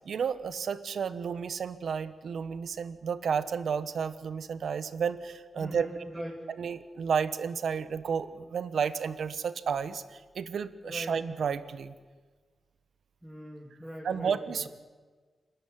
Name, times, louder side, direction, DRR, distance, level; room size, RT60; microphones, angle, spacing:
voice 1, 0.1-5.9 6.6-11.9 14.0-14.7, right 6 dB, 75° right, 13 dB, 1.1 m, -32 dB
voice 2, 5.6-6.4 10.8-11.2 13.2-14.7, equal, 5° right, -2 dB, 3.2 m, -41 dB
28.5 x 13.0 x 9.9 m, 1.4 s
wide cardioid pair, 130°, 0 cm